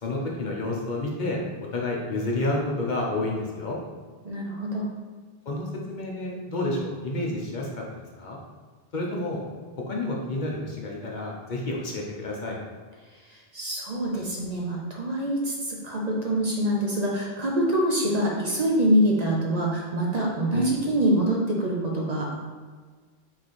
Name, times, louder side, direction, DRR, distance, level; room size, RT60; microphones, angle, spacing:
voice 1, 0.0-1.4 1.7-3.8 5.5-7.8 8.2-8.4 8.9-9.4 9.8-12.6 20.5-20.7, left 2 dB, 55° left, -2 dB, 0.8 m, -30 dB
voice 2, 4.2-4.9 13.3-22.3, right 1 dB, 45° right, -2 dB, 0.7 m, -25 dB
3.9 x 3.2 x 4.1 m, 1.5 s
omnidirectional pair, 1.0 m